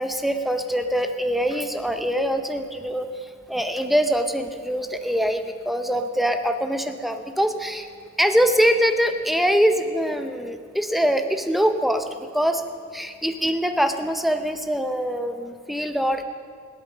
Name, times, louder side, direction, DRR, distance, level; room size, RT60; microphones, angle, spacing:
voice 1, 0.0-3.1 3.5-7.9 8.2-12.6 12.9-16.2, equal, ahead, 6 dB, 0.7 m, -23 dB
17.5 x 8.8 x 6.2 m, 2.1 s
head